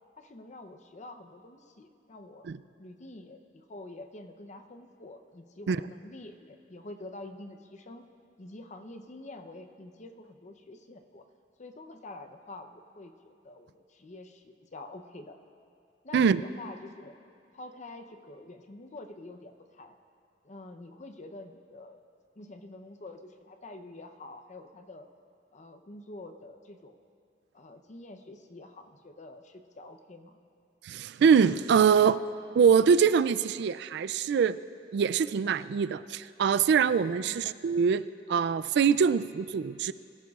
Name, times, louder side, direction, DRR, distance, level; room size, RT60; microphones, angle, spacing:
voice 1, 0.2-2.5 2.8-8.0 8.4-11.2 11.6-15.4 16.0-17.1 17.5-20.0 20.4-22.0 22.4-25.1 25.5-27.0 27.5-30.4 37.2-37.6, left 2 dB, 40° left, 7 dB, 0.7 m, -47 dB
voice 2, 30.8-32.2 32.5-34.6 34.9-39.9, right 6 dB, 65° right, 16 dB, 0.3 m, -24 dB
22.5 x 14.5 x 2.4 m, 2.4 s
head